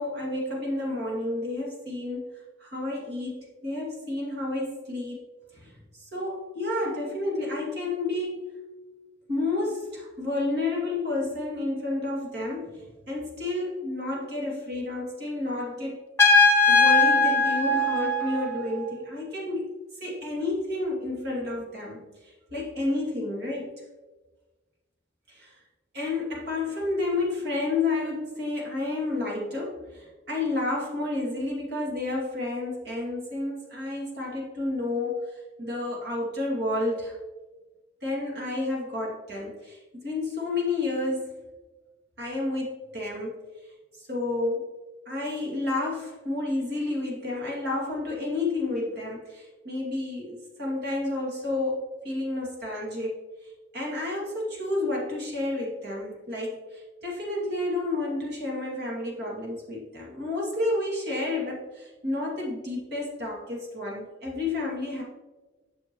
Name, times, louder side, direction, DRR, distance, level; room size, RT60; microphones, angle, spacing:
voice 1, 0.0-2.3 2.6-5.2 5.5-8.6 9.3-16.0 16.7-19.7 20.0-23.7 25.3-25.6 25.9-37.2 38.0-41.3 42.2-43.4 43.6-44.7 45.1-53.2 53.4-65.0, left 2 dB, 60° right, -3 dB, 2.4 m, -30 dB
Trumpet, 16.2-18.8, left 3 dB, 15° left, 1.0 m, -20 dB
8.9 x 6.5 x 3.0 m, 1.2 s
head